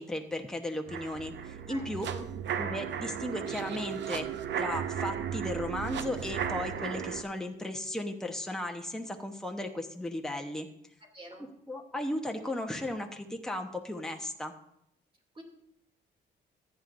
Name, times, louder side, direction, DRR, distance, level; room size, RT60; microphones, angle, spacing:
voice 1, 0.0-2.1 2.6-4.3 4.6-10.7 11.7-14.5, left 1 dB, 5° left, 2 dB, 1.1 m, -35 dB
sound 1, 0.9-7.2, right 8 dB, 65° right, 0.7 m, -35 dB
voice 2, 1.7-2.2 11.0-11.5 15.3-15.4, right 1 dB, 25° right, 2 dB, 2.7 m, -48 dB
14.5 x 9.3 x 2.6 m, 0.75 s
cardioid pair, 90°, 20 cm